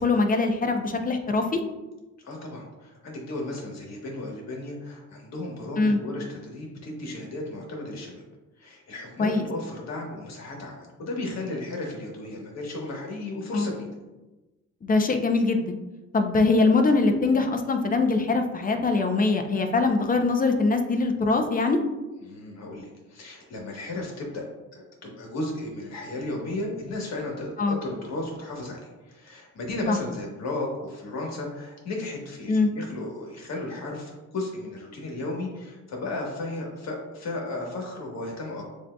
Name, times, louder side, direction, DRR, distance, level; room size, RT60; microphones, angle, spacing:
voice 1, 0.0-1.6 5.8-6.0 9.2-9.4 13.5-13.7 14.8-15.8 16.1-21.8 27.6-27.8 29.9-30.0 32.5-32.7, left 3 dB, 30° left, 5 dB, 0.6 m, -22 dB
voice 2, 2.2-8.1 8.6-13.9 22.2-24.5 24.7-38.6, left 2 dB, 60° left, -1 dB, 1.4 m, -34 dB
7.2 x 2.7 x 2.2 m, 1.1 s
cardioid pair, 90°, 30 cm